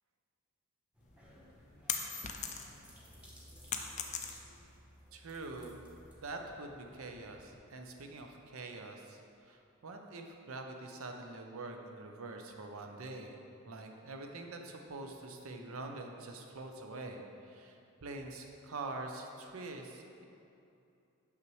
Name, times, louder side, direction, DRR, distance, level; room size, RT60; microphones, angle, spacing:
sound 1, 0.9-7.6, equal, 5° right, 0.9 m, -58 dB
sound 2, 1.1-2.9 3.2-4.7, left 7 dB, 30° left, 0.4 m, -38 dB
voice 1, 5.1-5.8 6.2-20.2, right 2 dB, 65° right, 3 dB, 0.6 m, -45 dB
6.2 x 5.7 x 3.1 m, 2.6 s
head